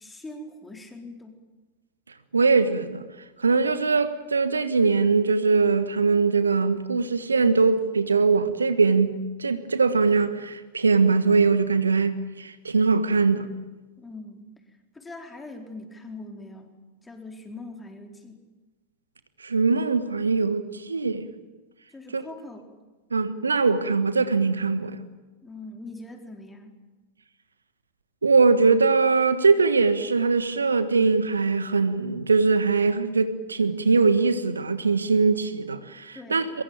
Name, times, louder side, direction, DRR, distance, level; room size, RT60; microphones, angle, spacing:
voice 1, 0.0-1.4 14.0-16.7 17.0-18.4 21.9-22.7 25.4-26.8 36.1-36.5, left 2 dB, 10° left, 4.2 m, -42 dB
voice 2, 2.3-3.0 3.4-9.1 9.4-13.5 19.4-21.3 22.1-22.2 23.1-25.0 28.2-36.5, right 4 dB, 75° right, 1.5 m, -21 dB
23.5 x 22.5 x 9.1 m
figure-of-eight pair, 90°, 0 cm